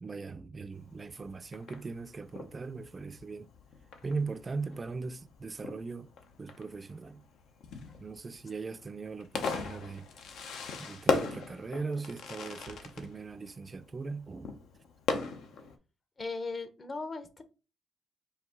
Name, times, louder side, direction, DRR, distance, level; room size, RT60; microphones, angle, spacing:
voice 1, 0.0-3.5 4.0-6.1 6.4-7.2 8.0-10.1 10.8-14.6, right 4 dB, 30° right, 0.3 m, -39 dB
Fireworks, 0.7-15.8, left 4 dB, 80° left, 0.7 m, -39 dB
voice 2, 16.2-17.4, left 3 dB, 35° left, 0.8 m, -37 dB
4.7 x 2.8 x 3.5 m
cardioid pair, 90°, 0 cm